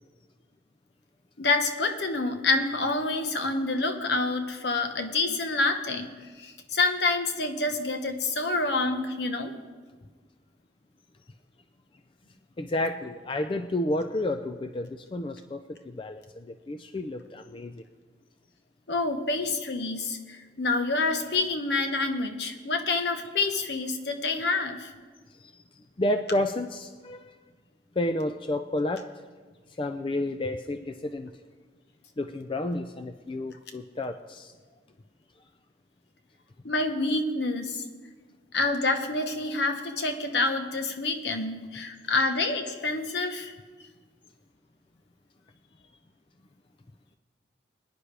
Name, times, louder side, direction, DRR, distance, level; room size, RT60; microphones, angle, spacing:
voice 1, 1.4-6.1 6.4-9.5 18.9-24.9 36.6-37.8 38.5-43.5, left 3 dB, 65° left, 6 dB, 1.2 m, -27 dB
voice 2, 12.6-15.6 15.8-17.8 25.3-27.3 28.0-29.1 29.8-31.3 32.2-34.5, left 1 dB, 25° left, 7 dB, 0.4 m, -31 dB
22.5 x 9.9 x 3.4 m, 1.4 s
head